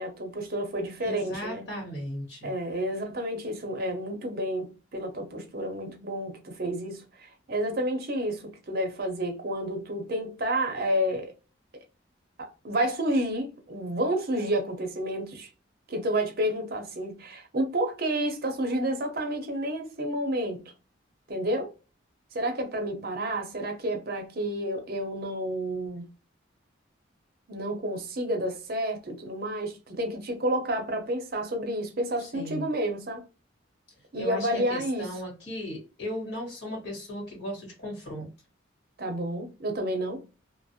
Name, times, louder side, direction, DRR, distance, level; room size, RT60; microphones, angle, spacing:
voice 1, 0.0-1.6 2.4-11.3 12.4-15.5 15.9-20.6 21.3-21.7 22.3-26.1 27.5-33.2 34.1-35.1 39.0-40.2, right 1 dB, 50° right, 0.6 m, -30 dB
voice 2, 1.0-2.5 32.2-32.7 34.2-38.3, equal, 60° left, 1.2 m, -36 dB
2.4 x 2.0 x 2.6 m
head